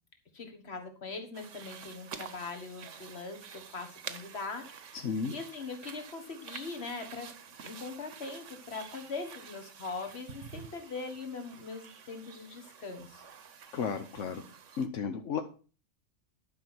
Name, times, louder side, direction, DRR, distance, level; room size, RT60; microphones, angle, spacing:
voice 1, 0.3-4.6 5.3-7.3 7.6-13.2, left 4 dB, 60° left, 5 dB, 1.9 m, -41 dB
sound 1, 1.3-14.9, right 7 dB, 85° right, 1.3 m, -49 dB
voice 2, 4.9-5.3 13.7-14.4 14.8-15.4, left 6 dB, 85° left, 6 dB, 1.3 m, -33 dB
11.0 x 5.5 x 6.1 m, 0.37 s
omnidirectional pair, 1.2 m